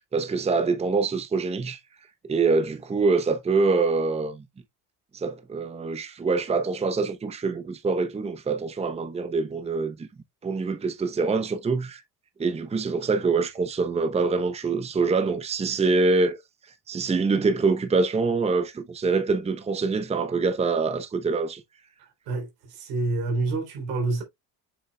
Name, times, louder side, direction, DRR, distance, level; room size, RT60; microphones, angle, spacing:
voice 1, 0.1-1.8 2.2-4.5 5.1-10.1 10.4-12.0 12.4-16.4 16.9-21.6, right 4 dB, 15° right, 0.7 m, -25 dB
voice 2, 22.3-24.2, right 3 dB, 85° right, 3.4 m, -27 dB
7.0 x 6.4 x 2.2 m
cardioid pair, 105°, 37 cm